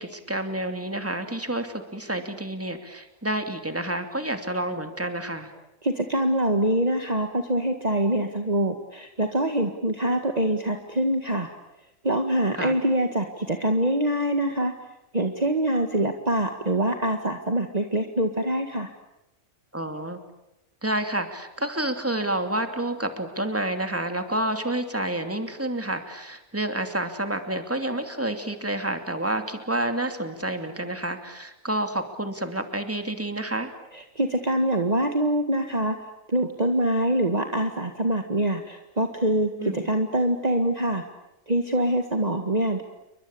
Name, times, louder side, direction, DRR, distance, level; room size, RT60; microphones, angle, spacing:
voice 1, 0.0-5.5 12.5-12.8 19.7-20.2 20.8-33.8 39.6-39.9, right 1 dB, 10° right, 7 dB, 2.6 m, -29 dB
voice 2, 5.8-11.5 12.0-14.7 15.1-18.9 33.9-36.0 36.3-41.0 41.5-42.8, right 1 dB, 30° right, 5 dB, 1.9 m, -24 dB
29.5 x 23.5 x 8.6 m, 0.88 s
omnidirectional pair, 1.4 m